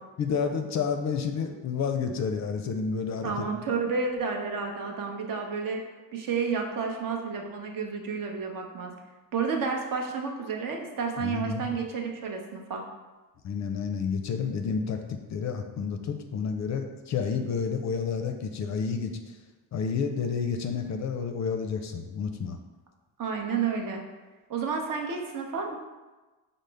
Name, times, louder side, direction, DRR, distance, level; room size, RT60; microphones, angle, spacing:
voice 1, 0.2-3.5 11.2-11.7 13.4-19.1 19.7-22.6, left 6 dB, 45° left, 5 dB, 0.4 m, -30 dB
voice 2, 3.2-5.8 6.1-8.9 9.3-12.8 23.2-24.0 24.5-25.8, right 5 dB, 55° right, 2 dB, 0.7 m, -31 dB
5.0 x 2.0 x 3.3 m, 1.2 s
cardioid pair, 90°, 39 cm